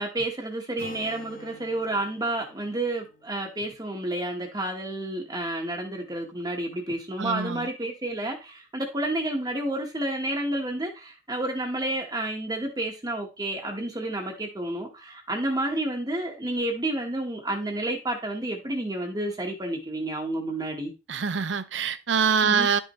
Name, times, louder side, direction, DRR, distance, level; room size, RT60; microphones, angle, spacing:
voice 1, 0.0-20.9 22.4-22.7, right 1 dB, 20° right, 1.2 m, -30 dB
Acoustic guitar, 0.8-4.5, left 1 dB, 50° left, 1.7 m, -48 dB
voice 2, 7.2-7.7 21.1-22.8, right 6 dB, 80° right, 0.7 m, -24 dB
11.0 x 5.4 x 3.1 m
head